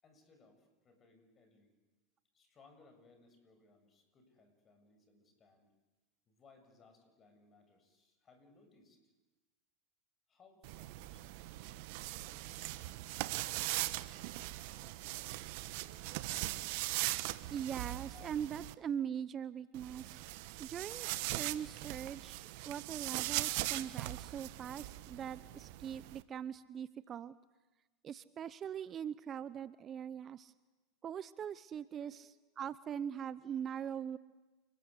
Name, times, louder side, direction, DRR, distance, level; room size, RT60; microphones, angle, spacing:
voice 1, 0.0-1.7 2.3-5.7 6.3-9.0 10.3-13.9 14.5-15.8 18.1-18.3 23.4-23.5 32.0-32.6, left 4 dB, 30° left, 7 dB, 7.3 m, -65 dB
sound 1, 10.6-18.7 19.7-26.2, right 18 dB, 60° right, 1.2 m, -40 dB
voice 2, 17.5-20.2 20.6-27.3 28.0-30.5 31.0-34.2, right 8 dB, 35° right, 16 dB, 0.8 m, -42 dB
29.5 x 20.5 x 8.4 m, 1.2 s
hypercardioid pair, 95°, 0 cm